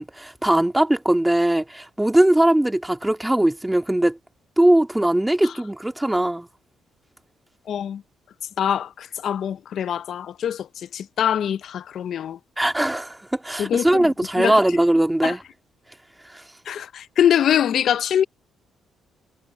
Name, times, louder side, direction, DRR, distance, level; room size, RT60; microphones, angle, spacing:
voice 1, 0.0-4.2 4.6-6.5 12.6-15.4, right 1 dB, 10° right, 1.9 m, -20 dB
voice 2, 7.7-8.0 8.6-12.4 13.6-14.1 14.4-14.6 15.2-15.3 16.7-18.2, left 9 dB, 65° left, 0.5 m, -23 dB
cardioid pair, 90°, 0 cm